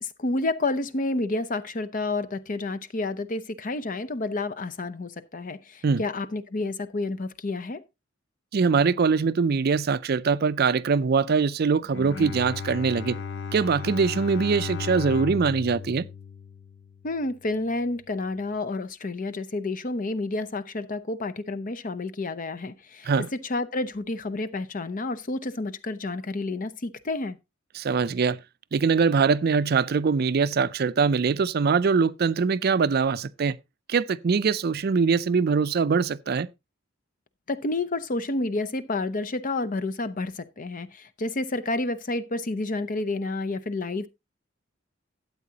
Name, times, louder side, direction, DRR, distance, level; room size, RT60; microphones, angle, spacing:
voice 1, 0.0-7.8 17.0-27.4 37.5-44.1, left 2 dB, 40° left, 0.7 m, -30 dB
voice 2, 8.5-13.2 13.5-16.1 23.0-23.3 27.7-28.4 28.7-33.6 33.9-36.5, right 5 dB, 50° right, 0.4 m, -23 dB
Bowed string instrument, 11.8-17.2, left 6 dB, 60° left, 1.0 m, -35 dB
12.5 x 8.4 x 2.8 m
head